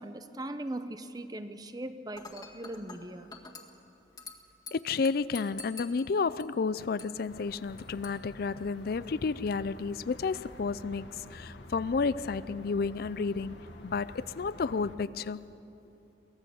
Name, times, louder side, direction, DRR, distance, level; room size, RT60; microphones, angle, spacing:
voice 1, 0.0-3.3, right 1 dB, 20° right, 10 dB, 0.8 m, -39 dB
Dishes pots and pans / Glass, 2.2-9.2, left 3 dB, 20° left, 1.8 m, -50 dB
voice 2, 4.7-13.6 13.8-15.4, left 4 dB, 60° left, 16 dB, 0.4 m, -31 dB
sound 1, 7.3-15.0, left 1 dB, 85° left, 1.7 m, -49 dB
24.0 x 18.0 x 7.1 m, 2.9 s
head